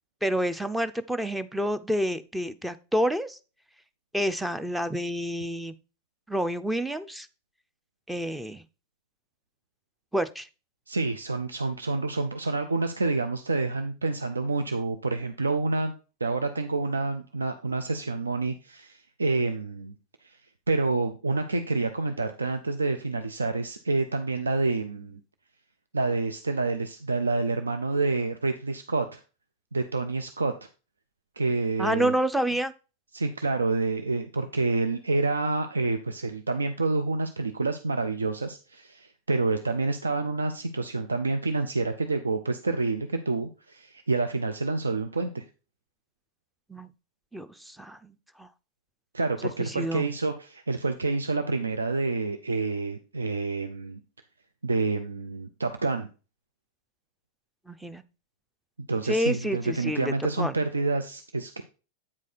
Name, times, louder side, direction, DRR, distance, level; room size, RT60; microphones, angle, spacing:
voice 1, 0.2-3.4 4.1-5.7 6.3-7.3 8.1-8.6 10.1-10.5 31.8-32.7 46.7-46.9 47.3-48.5 49.4-50.0 57.7-58.0 59.1-60.5, equal, 5° right, 13 dB, 0.5 m, -29 dB
voice 2, 10.9-15.9 16.2-19.9 20.7-25.2 25.9-29.2 29.7-30.5 31.4-32.1 33.1-45.4 49.1-54.0 54.6-56.1 58.9-61.6, right 3 dB, 75° right, 8 dB, 0.5 m, -28 dB
8.6 x 4.8 x 4.2 m, 0.33 s
figure-of-eight pair, 90°, 0 cm